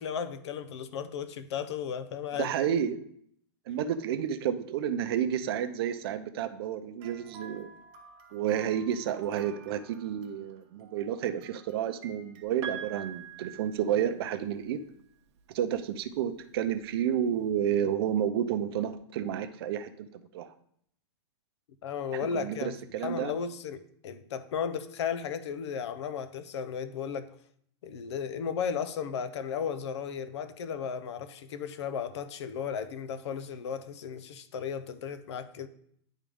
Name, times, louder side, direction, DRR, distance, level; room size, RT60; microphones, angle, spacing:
voice 1, 0.0-2.5 21.8-27.3 27.8-35.7, left 7 dB, 75° left, 0.6 m, -35 dB
voice 2, 2.4-3.0 3.7-7.7 8.3-14.8 15.5-20.5 22.1-23.3, right 9 dB, 60° right, 0.6 m, -31 dB
sound 1, 7.0-12.4, right 5 dB, 35° right, 0.8 m, -53 dB
Piano, 12.6-14.6 15.9-16.0, right 8 dB, 80° right, 0.9 m, -42 dB
10.0 x 3.7 x 3.5 m
supercardioid pair, 150°, 15 cm